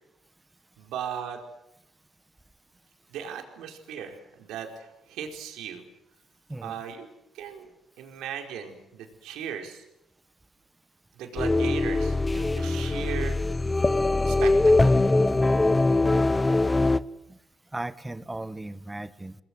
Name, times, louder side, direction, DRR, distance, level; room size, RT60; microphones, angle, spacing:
voice 1, 0.8-1.4 3.1-5.8 6.6-7.1 7.3-7.7 8.0-9.8 11.1-13.4 14.2-14.5 14.8-15.0, right 8 dB, 90° right, 4 dB, 4.7 m, -37 dB
voice 2, 6.5-6.8 17.3-17.4 17.7-19.4, right 2 dB, 15° right, 14 dB, 1.5 m, -36 dB
sound 1, 11.4-17.0, left 2 dB, 20° left, 0.9 m, -22 dB
30.0 x 21.0 x 8.0 m, 0.86 s
cardioid pair, 90°, 0 cm